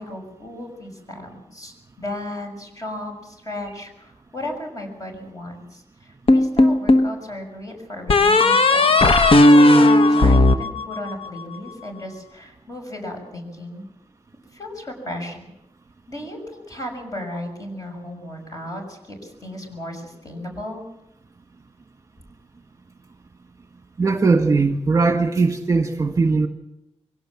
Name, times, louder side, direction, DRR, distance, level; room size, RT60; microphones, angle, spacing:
voice 1, 0.0-8.9 9.5-13.9 14.5-15.5 16.1-20.8, left 1 dB, 30° left, 2 dB, 6.4 m, -35 dB
sound 1, 6.3-7.1 8.1-11.4, left 2 dB, 55° left, 1.1 m, -14 dB
voice 2, 24.0-26.5, right 4 dB, 30° right, 6 dB, 1.5 m, -19 dB
24.0 x 17.5 x 7.6 m, 0.87 s
wide cardioid pair, 130°, 11 cm